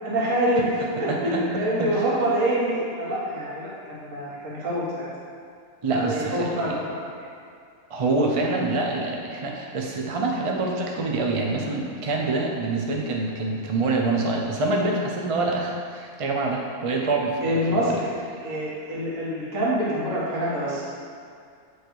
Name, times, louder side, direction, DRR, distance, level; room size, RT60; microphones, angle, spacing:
voice 1, 0.0-0.7 1.0-5.1 5.9-7.1 17.4-18.1 18.4-20.8, right 1 dB, 70° right, -6 dB, 1.7 m, -26 dB
voice 2, 1.1-1.9 5.8-6.8 7.9-17.8, right 3 dB, 40° right, 0 dB, 0.5 m, -26 dB
8.5 x 3.2 x 4.5 m, 2.3 s
omnidirectional pair, 1.4 m